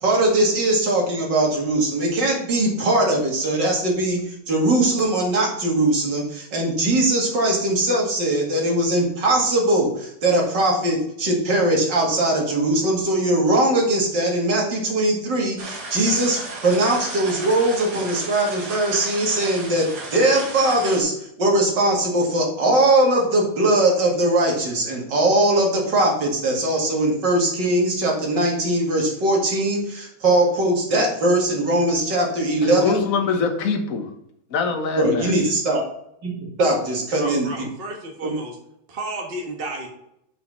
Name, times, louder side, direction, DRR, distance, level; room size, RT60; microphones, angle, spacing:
voice 1, 0.0-4.2 4.5-21.1 21.4-33.0 35.0-35.8 36.2-37.5 38.2-38.3, right 1 dB, 55° right, -1 dB, 2.8 m, -20 dB
sound 1, 15.6-21.0, right 2 dB, 75° right, 2.6 m, -34 dB
voice 2, 32.6-34.1 34.5-35.5, left 4 dB, 45° left, 4 dB, 1.4 m, -23 dB
voice 3, 37.1-38.6 38.9-39.9, right 1 dB, 30° right, 0 dB, 1.4 m, -32 dB
6.4 x 5.7 x 5.8 m, 0.76 s
omnidirectional pair, 2.3 m